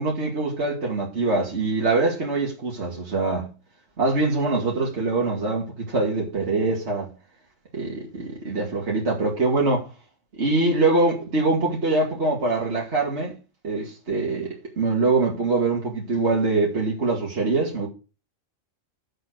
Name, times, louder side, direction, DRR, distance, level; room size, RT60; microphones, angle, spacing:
voice 1, 0.0-3.5 4.0-7.1 7.7-9.9 10.4-13.4 13.6-17.9, right 3 dB, 60° right, 2.4 m, -23 dB
7.9 x 6.8 x 6.2 m
omnidirectional pair, 1.3 m